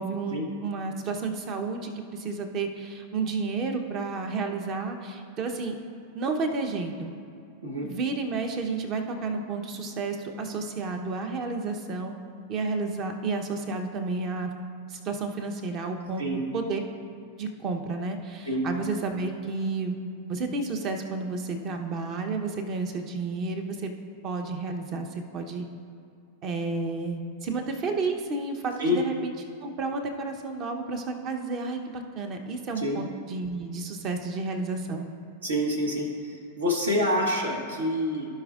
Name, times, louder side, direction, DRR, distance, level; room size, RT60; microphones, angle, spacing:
voice 1, 0.0-5.7 6.1-7.1 7.8-12.1 12.5-14.5 14.9-16.8 17.4-20.0 20.3-23.9 24.2-25.7 26.4-29.3 29.6-35.1, right 3 dB, 35° right, 5 dB, 0.9 m, -31 dB
voice 2, 35.4-38.3, left 1 dB, 70° right, 0 dB, 1.4 m, -27 dB
16.0 x 5.4 x 2.5 m, 2.5 s
figure-of-eight pair, 90°, 0 cm